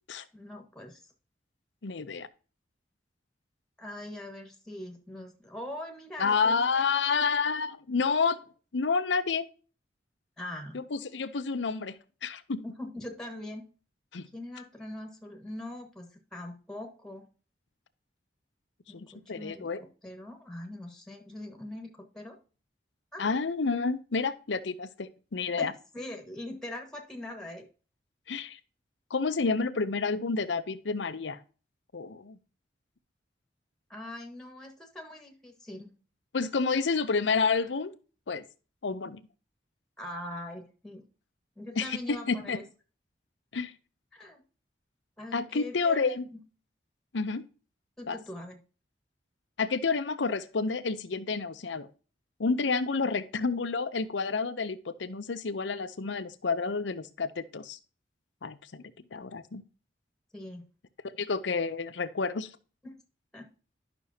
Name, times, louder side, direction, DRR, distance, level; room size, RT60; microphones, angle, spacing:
voice 1, 0.3-1.1 3.8-7.4 10.4-10.8 12.6-13.6 14.3-17.3 18.9-19.7 20.0-22.4 23.1-23.3 25.6-27.6 33.9-35.9 40.0-41.0 41.5-42.6 44.1-44.4 45.2-46.4 48.0-48.6 60.3-60.6 62.8-62.9 63.3-63.5, left 1 dB, 5° left, 3 dB, 1.6 m, -42 dB
voice 2, 1.8-2.3 6.2-8.4 8.7-9.5 10.7-12.0 12.2-12.6 14.1-14.3 18.9-19.8 23.2-25.7 28.3-28.6 29.1-31.4 31.9-32.4 36.3-37.9 38.3-38.4 38.8-39.2 41.8-42.6 43.5-43.7 45.3-46.2 47.1-47.4 48.1-48.2 49.6-51.9 52.4-57.8 58.4-58.8 59.1-59.6 61.2-62.5, left 4 dB, 90° left, 12 dB, 0.7 m, -29 dB
11.5 x 6.1 x 2.8 m, 0.36 s
head